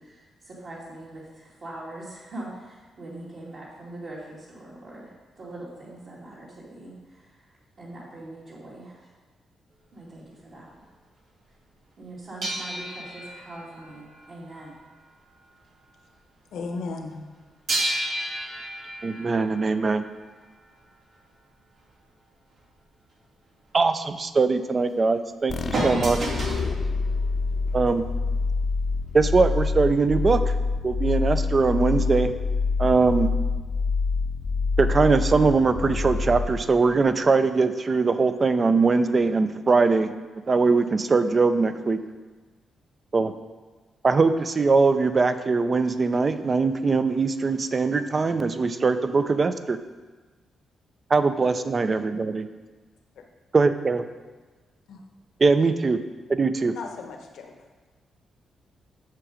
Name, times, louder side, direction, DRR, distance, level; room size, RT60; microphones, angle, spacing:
voice 1, 0.0-5.1 5.4-7.4 7.8-9.1 9.9-10.7 12.0-14.8, right 2 dB, 55° right, -7 dB, 2.3 m, -42 dB
sound 1, 12.4-15.5 15.8-16.1 17.7-20.4 25.7-26.7 27.7-27.8, right 1 dB, 70° right, 2.8 m, -32 dB
voice 2, 16.5-17.2 54.9-55.0 56.7-57.6, left 4 dB, 80° left, 3 dB, 1.1 m, -35 dB
voice 3, 19.0-20.1 23.7-26.3 27.7-28.0 29.1-30.5 30.8-32.3 32.8-33.3 34.8-40.1 40.5-42.0 43.1-43.3 44.0-49.8 51.1-52.5 53.5-54.0 55.4-56.0 56.3-56.7, right 4 dB, 35° right, 11 dB, 0.5 m, -21 dB
sound 2, 25.5-37.0, left 4 dB, 45° left, 0.7 m, -26 dB
7.6 x 7.0 x 5.1 m, 1.3 s
cardioid pair, 90°, 0 cm